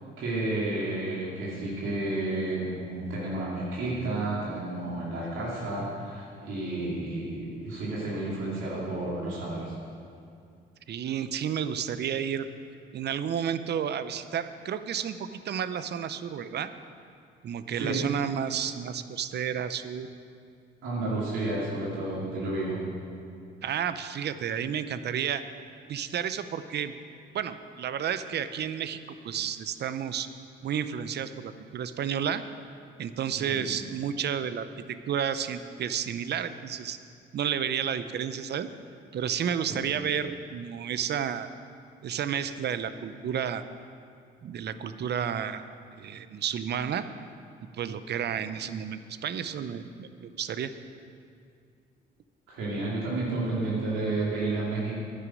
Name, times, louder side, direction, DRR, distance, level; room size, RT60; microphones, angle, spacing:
voice 1, 0.2-9.7 17.7-18.0 20.8-22.8 33.4-33.7 39.7-39.8 52.5-54.9, right 2 dB, 85° right, -7 dB, 2.8 m, -31 dB
voice 2, 10.9-12.5 12.9-16.7 17.4-20.1 23.6-25.4 25.9-26.9 27.3-29.0 29.2-30.3 30.6-32.4 33.0-37.0 37.3-38.7 39.1-41.5 42.0-43.6 44.4-47.1 47.7-50.7, right 8 dB, 55° right, 12 dB, 0.6 m, -31 dB
10.5 x 10.0 x 6.2 m, 2.3 s
cardioid pair, 90°, 20 cm